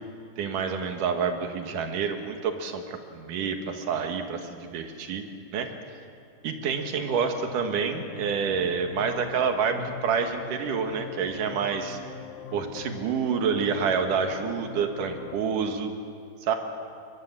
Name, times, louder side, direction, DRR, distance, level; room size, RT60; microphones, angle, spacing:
voice 1, 0.4-5.2 5.5-5.7 6.4-12.0 12.5-15.9 16.4-16.6, right 6 dB, 85° right, 5 dB, 3.1 m, -28 dB
sound 1, 7.0-15.4, left 8 dB, 70° left, 2.6 m, -42 dB
22.5 x 21.0 x 7.4 m, 2.6 s
omnidirectional pair, 3.7 m